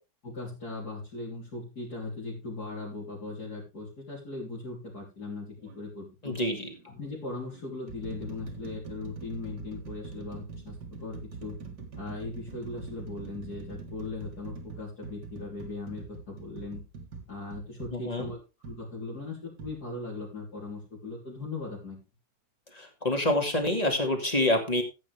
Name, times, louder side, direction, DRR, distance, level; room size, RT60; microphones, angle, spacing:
voice 1, 0.2-6.4 6.8-11.6 12.0-16.8 17.3-22.0, left 3 dB, 65° left, -6 dB, 4.1 m, -39 dB
sound 1, 5.6-5.8 6.7-6.9 7.5-18.8 19.6-19.8, right 5 dB, 75° right, 2.4 m, -43 dB
voice 2, 6.2-6.7 17.9-18.3 22.8-24.8, left 1 dB, 20° left, 4 dB, 2.4 m, -27 dB
15.0 x 8.3 x 3.4 m, 0.28 s
omnidirectional pair, 1.8 m